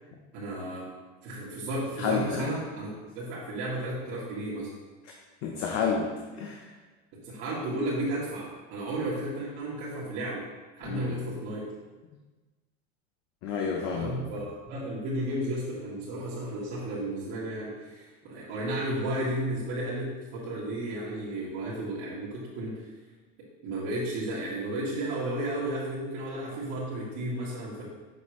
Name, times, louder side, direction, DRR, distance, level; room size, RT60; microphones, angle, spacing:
voice 1, 0.3-0.9 1.2-4.7 7.1-10.4 10.8-11.7 13.9-22.8 23.6-27.8, right 1 dB, 55° right, -10 dB, 1.7 m, -33 dB
voice 2, 2.0-2.5 5.4-6.1 6.4-6.7 10.8-11.2 13.4-14.1, left 5 dB, 50° left, 0 dB, 0.8 m, -29 dB
6.7 x 5.3 x 3.1 m, 1.3 s
supercardioid pair, 150°, 31 cm